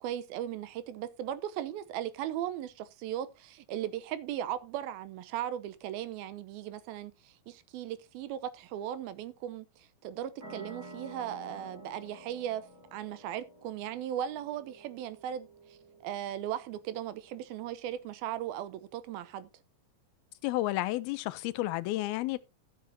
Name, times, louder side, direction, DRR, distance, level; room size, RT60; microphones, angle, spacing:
voice 1, 0.0-12.6 12.9-15.8 16.0-19.5, right 11 dB, 85° right, 2.7 m, -37 dB
sound 1, 10.4-17.6, right 1 dB, 30° right, 2.5 m, -51 dB
voice 2, 20.4-22.4, left 17 dB, 90° left, 2.6 m, -31 dB
14.5 x 8.2 x 2.8 m
omnidirectional pair, 4.3 m